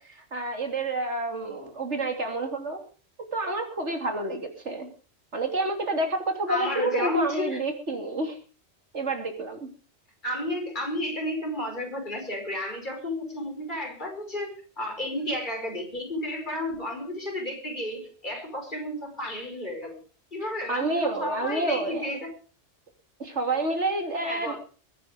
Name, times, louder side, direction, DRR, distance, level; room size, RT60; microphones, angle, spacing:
voice 1, 0.0-2.8 3.3-4.9 5.3-8.4 8.9-9.7 20.4-22.1 23.2-24.6, right 2 dB, 85° right, 4 dB, 3.5 m, -29 dB
voice 2, 6.5-7.6 10.2-20.0 20.3-22.4 24.2-24.6, left 1 dB, 45° left, 2 dB, 5.4 m, -32 dB
22.0 x 9.7 x 5.1 m, 0.38 s
omnidirectional pair, 1.2 m